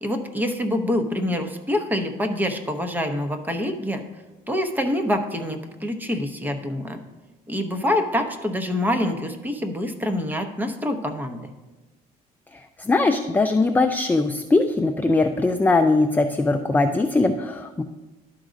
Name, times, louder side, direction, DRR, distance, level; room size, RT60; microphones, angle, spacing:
voice 1, 0.0-4.0 4.5-7.0 7.5-11.4, left 1 dB, 10° right, 6 dB, 0.9 m, -26 dB
voice 2, 12.5-17.8, left 3 dB, 10° left, 6 dB, 0.3 m, -21 dB
11.5 x 3.8 x 5.1 m, 1.1 s
cardioid pair, 110°, 17 cm